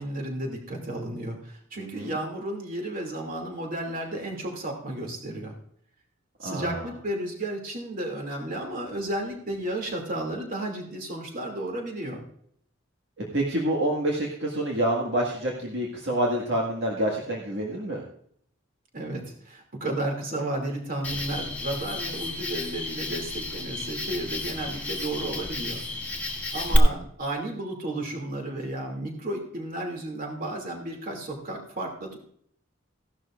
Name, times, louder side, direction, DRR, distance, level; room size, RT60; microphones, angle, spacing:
voice 1, 0.0-5.5 6.4-12.2 18.9-25.8 26.5-32.2, right 1 dB, 45° right, 1 dB, 2.7 m, -33 dB
voice 2, 1.8-2.2 6.4-6.9 13.2-18.0, right 1 dB, 65° right, -2 dB, 1.9 m, -27 dB
Cricket, 21.0-26.8, left 1 dB, 10° left, 1.6 m, -31 dB
16.0 x 12.0 x 2.5 m, 0.65 s
head